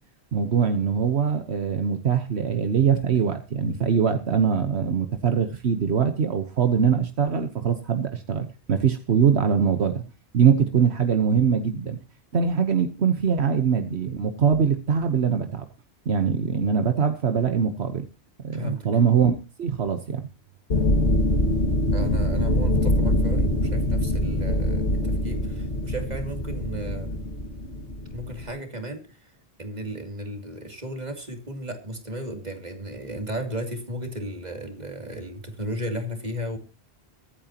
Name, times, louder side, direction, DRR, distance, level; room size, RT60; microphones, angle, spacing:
voice 1, 0.3-10.0 10.3-12.0 12.3-15.6 16.1-18.0 18.4-20.3, right 7 dB, 75° right, 8 dB, 1.3 m, -22 dB
voice 2, 18.5-18.9 20.7-20.9 21.9-27.3 28.1-29.3 29.6-36.6, equal, 40° right, 5 dB, 2.8 m, -34 dB
sound 1, 20.7-28.5, left 1 dB, 85° left, 2.3 m, -24 dB
23.0 x 9.0 x 2.9 m, 0.32 s
omnidirectional pair, 1.1 m